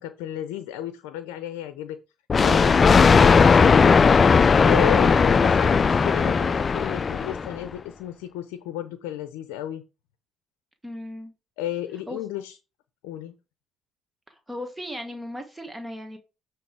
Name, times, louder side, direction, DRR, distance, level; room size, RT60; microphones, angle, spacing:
voice 1, 0.0-2.0 2.4-3.9 4.6-9.8 11.6-12.6 13.0-13.3, left 11 dB, 85° left, 11 dB, 0.6 m, -33 dB
Thunder, 2.3-7.6, left 5 dB, 40° left, 0.4 m, -17 dB
voice 2, 10.8-11.3 12.1-12.2 14.3-16.2, left 1 dB, 10° right, 5 dB, 1.4 m, -37 dB
9.3 x 3.2 x 4.7 m, 0.29 s
supercardioid pair, 70°, 0 cm